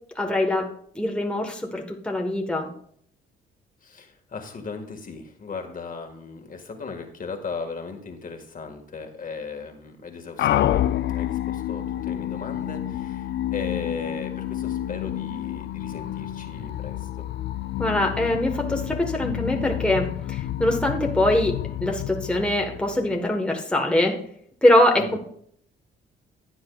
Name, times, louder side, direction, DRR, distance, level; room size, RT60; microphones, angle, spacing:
voice 1, 0.1-0.7 0.9-2.7 17.8-21.6 21.8-24.2 24.6-25.2, left 1 dB, 5° left, 1 dB, 1.3 m, -23 dB
voice 2, 3.8-17.3 25.0-25.2, left 4 dB, 45° left, 5 dB, 1.7 m, -37 dB
sound 1, 10.4-23.3, left 12 dB, 60° left, 0.5 m, -29 dB
15.0 x 8.9 x 2.3 m, 0.64 s
cardioid pair, 90°, 20 cm